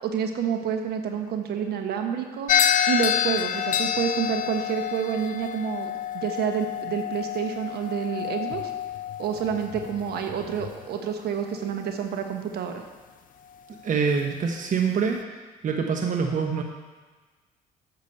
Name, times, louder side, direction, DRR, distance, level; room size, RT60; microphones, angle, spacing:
voice 1, 0.0-2.5 2.9-8.7 9.2-12.8, right 7 dB, 65° right, 5 dB, 1.2 m, -28 dB
sound 1, 2.5-10.8, left 9 dB, 50° left, 0.5 m, -28 dB
voice 2, 13.8-15.2 15.6-16.6, right 5 dB, 50° right, 3 dB, 1.0 m, -25 dB
8.5 x 6.1 x 6.8 m, 1.3 s
supercardioid pair, 75°, 17 cm